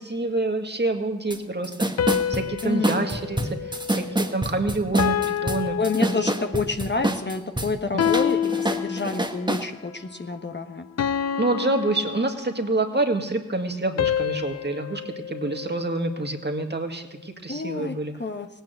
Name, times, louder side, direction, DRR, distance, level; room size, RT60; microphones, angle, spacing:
voice 1, 0.0-1.7 2.3-5.8 7.9-8.0 11.4-18.1, right 2 dB, 35° right, 4 dB, 1.9 m, -27 dB
sound 1, 1.3-1.4 1.6-7.7 8.0-9.7, right 1 dB, 15° right, 1.5 m, -26 dB
sound 2, 2.0-4.5 5.0-6.7 8.0-9.5 11.0-12.9 14.0-16.3, left 9 dB, 55° left, 0.6 m, -28 dB
voice 2, 2.6-3.1 5.8-8.4 8.7-10.9 17.5-18.5, left 3 dB, 35° left, 6 dB, 1.2 m, -28 dB
17.0 x 9.4 x 7.9 m, 1.1 s
cardioid pair, 40°, 31 cm